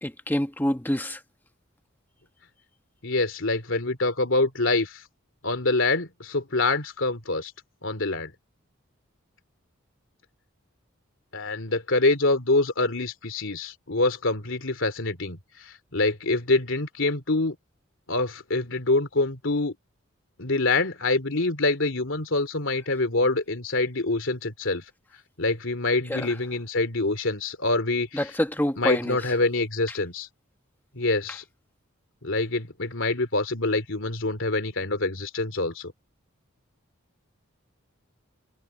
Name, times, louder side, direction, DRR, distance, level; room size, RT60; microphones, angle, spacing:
voice 1, 0.0-1.2 26.1-26.3 28.1-29.2, left 1 dB, 10° left, 1.3 m, -27 dB
voice 2, 3.0-5.0 5.4-7.5 7.8-8.3 11.3-15.4 15.6-17.6 18.1-19.7 20.4-24.8 25.4-28.3 28.8-30.3 30.9-31.4 32.2-35.9, left 2 dB, 65° left, 2.9 m, -25 dB
head